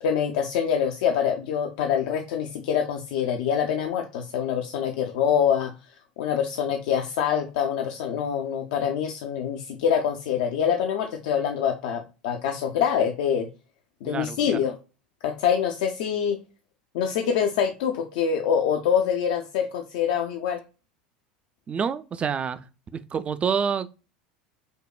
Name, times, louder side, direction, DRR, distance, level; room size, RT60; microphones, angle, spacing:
voice 1, 0.0-5.7 6.2-13.5 14.0-14.7 15.2-16.4 16.9-20.6, left 8 dB, 65° left, 0.4 m, -25 dB
voice 2, 14.1-14.6 21.7-22.7 22.9-23.9, right 6 dB, 25° right, 0.3 m, -28 dB
5.2 x 2.1 x 2.3 m
hypercardioid pair, 80°, 4 cm